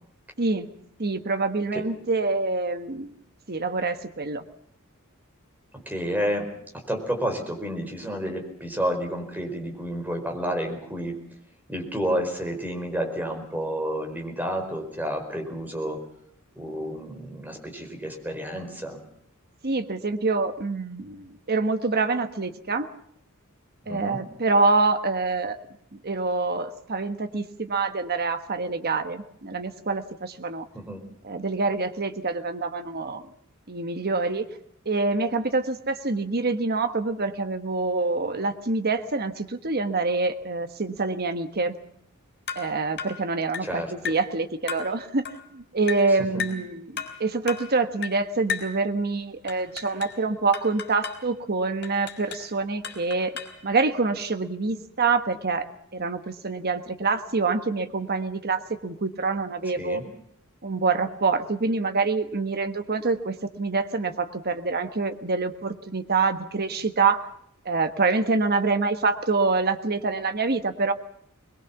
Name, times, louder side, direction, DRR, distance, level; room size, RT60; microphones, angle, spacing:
voice 1, 0.4-0.7 1.0-3.1 3.5-4.4 19.6-22.9 23.9-25.6 25.9-30.7 31.2-33.3 33.7-34.5 34.8-41.7 42.5-45.2 45.5-53.3 53.6-60.0 60.6-67.2 67.6-70.9, right 3 dB, 45° right, 8 dB, 1.4 m, -26 dB
voice 2, 5.7-6.5 6.7-11.2 11.7-16.0 16.6-19.0 23.8-24.2 30.7-31.0 43.6-43.9 46.3-46.4 59.8-60.0, equal, 10° right, 3 dB, 4.7 m, -30 dB
sound 1, 42.5-42.7 43.0-43.2 43.5-43.7 44.0-44.3 44.7-44.9 45.2-45.4 45.9-46.1 46.4-46.6 47.0-47.2 47.5-47.7 48.0-48.2 48.5-48.8 49.5-50.2 50.5-51.2 51.8-52.5 52.8-53.6, left 7 dB, 50° left, 4.0 m, -34 dB
22.5 x 21.5 x 7.2 m, 0.69 s
head